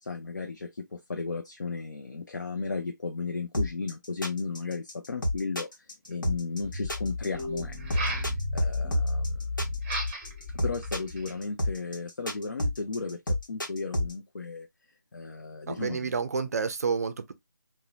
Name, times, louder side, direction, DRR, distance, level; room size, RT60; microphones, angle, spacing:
voice 1, 0.0-9.7 10.6-14.7 15.1-16.1, left 4 dB, 65° left, 0.5 m, -35 dB
sound 1, 3.5-14.1, left 1 dB, 85° left, 1.0 m, -29 dB
sound 2, 6.1-6.2 7.8-8.3 9.8-10.4 10.8-11.4, right 3 dB, 15° right, 0.6 m, -35 dB
sound 3, 6.6-11.3, left 2 dB, 20° left, 1.0 m, -33 dB
voice 2, 15.7-17.3, right 5 dB, 50° right, 0.4 m, -29 dB
2.7 x 2.1 x 2.3 m
figure-of-eight pair, 150°, 10 cm